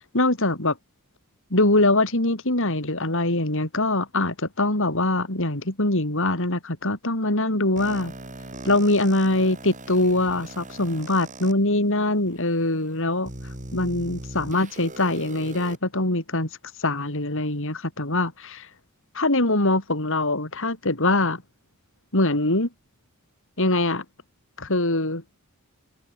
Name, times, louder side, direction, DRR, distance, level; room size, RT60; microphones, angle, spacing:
voice 1, 0.1-0.8 1.5-8.1 8.6-13.3 13.7-16.5 16.8-18.7 19.1-21.4 22.1-22.7 23.6-24.0 24.6-25.2, left 2 dB, 60° left, 4.8 m, -23 dB
sound 1, 7.8-11.5 12.3-12.4 13.2-15.8, right 2 dB, 35° right, 6.0 m, -40 dB
head